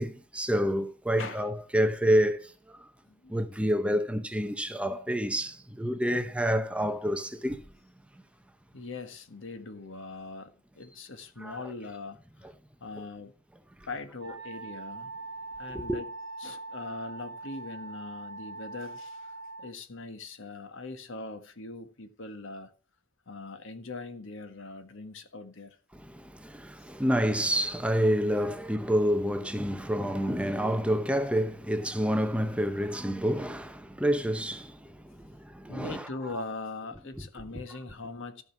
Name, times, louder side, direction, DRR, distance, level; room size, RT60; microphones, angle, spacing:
voice 1, 0.0-2.8 3.3-7.6 11.4-11.6 15.7-16.0 25.9-36.1, equal, 5° right, 0.7 m, -28 dB
voice 2, 1.2-1.5 3.0-3.3 8.7-12.5 12.8-13.3 13.9-15.1 15.6-16.1 16.4-22.7 23.3-25.8 29.4-29.5 35.7-38.4, left 3 dB, 65° left, 1.5 m, -41 dB
Wind instrument woodwind instrument, 14.2-19.7, right 3 dB, 80° right, 1.4 m, -42 dB
13.5 x 5.3 x 5.9 m
head